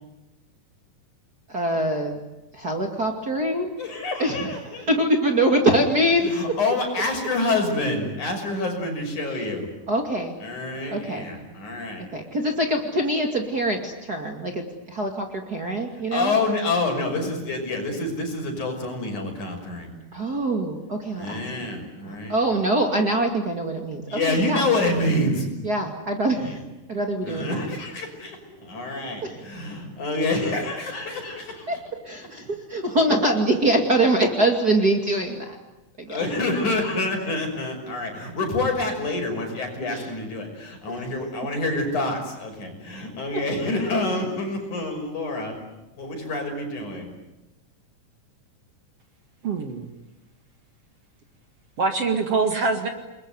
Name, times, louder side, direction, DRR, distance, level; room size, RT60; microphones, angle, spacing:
voice 1, 1.5-2.2 2.5-3.7 4.2-4.5 4.9-6.4 9.9-10.3 10.9-11.3 12.1-16.4 20.1-21.7 22.0-24.6 25.6-26.6 26.9-27.7 29.2-29.4 31.7-31.8 32.0-35.6 36.0-36.3 39.9-40.1, right 1 dB, 30° right, 3 dB, 2.6 m, -24 dB
voice 2, 3.8-4.8 6.2-9.7 10.4-12.1 16.1-19.9 21.1-22.4 24.1-25.5 26.4-26.6 27.2-31.7 36.1-45.6 45.9-47.1, left 2 dB, 60° left, 3 dB, 7.2 m, -27 dB
voice 3, 49.4-49.9 51.8-52.9, right 4 dB, 50° right, 6 dB, 2.7 m, -24 dB
29.0 x 21.5 x 9.6 m, 1.0 s
omnidirectional pair, 3.9 m